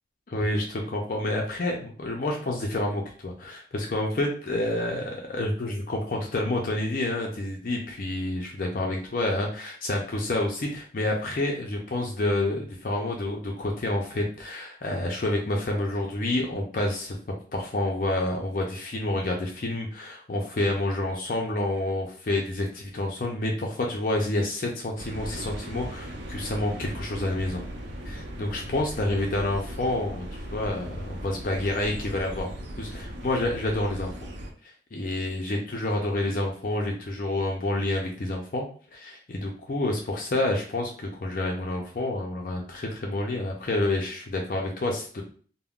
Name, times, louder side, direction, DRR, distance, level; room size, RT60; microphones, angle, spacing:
voice 1, 0.3-17.2 17.5-27.6 28.1-32.5 32.8-34.1 34.6-38.7 38.9-45.2, left 1 dB, 50° left, 0 dB, 0.5 m, -28 dB
sound 1, 25.0-34.5, equal, 90° right, 0.6 m, -38 dB
3.5 x 2.1 x 2.3 m, 0.43 s
head